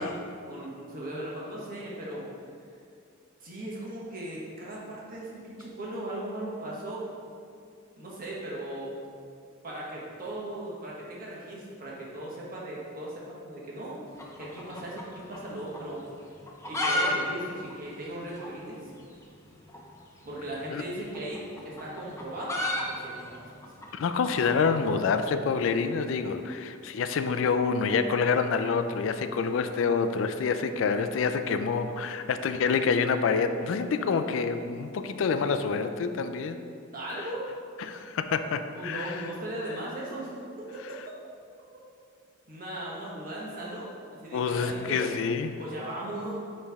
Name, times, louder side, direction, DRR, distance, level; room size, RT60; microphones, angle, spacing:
voice 1, 0.0-2.2 3.4-7.1 7.9-8.9 9.6-14.0 14.4-16.0 16.7-18.8 20.2-22.6 22.9-23.4 36.9-37.5 38.7-41.0 42.5-45.1 45.6-46.3, right 1 dB, 45° right, -5 dB, 1.3 m, -38 dB
sound 1, 14.1-15.5 15.7-15.8 16.4-17.1 17.4-17.5 17.7-17.8 18.4-18.5 19.7-19.9 21.0-25.2, left 1 dB, 15° left, 0.6 m, -32 dB
voice 2, 23.9-36.6 37.1-37.3 37.8-39.3 44.3-45.6, left 5 dB, 70° left, 9 dB, 0.3 m, -27 dB
9.5 x 3.2 x 3.5 m, 2.4 s
head